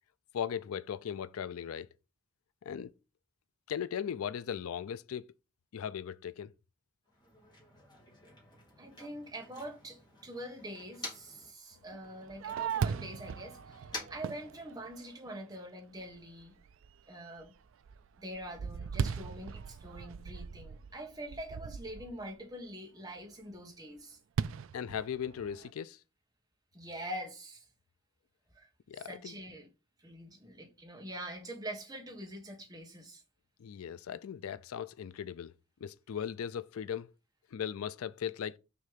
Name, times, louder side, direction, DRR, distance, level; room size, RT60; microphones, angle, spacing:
voice 1, 0.3-1.9 2.6-2.9 3.7-5.3 5.7-6.5 24.7-26.0 28.9-29.3 33.6-35.5 35.8-37.1 37.5-38.6, left 8 dB, 85° left, 0.4 m, -38 dB
Motor vehicle (road), 7.1-11.5 11.8-15.1, left 2 dB, 20° left, 1.8 m, -50 dB
voice 2, 8.8-16.6 17.1-17.5 18.2-24.2 26.7-27.7 28.5-29.7 30.0-33.2, right 1 dB, 15° right, 1.5 m, -45 dB
Fireworks, 11.9-15.5 16.0-16.1 16.6-17.0 17.4-22.3 24.4-25.7, right 6 dB, 65° right, 0.3 m, -38 dB
6.2 x 3.3 x 5.6 m
head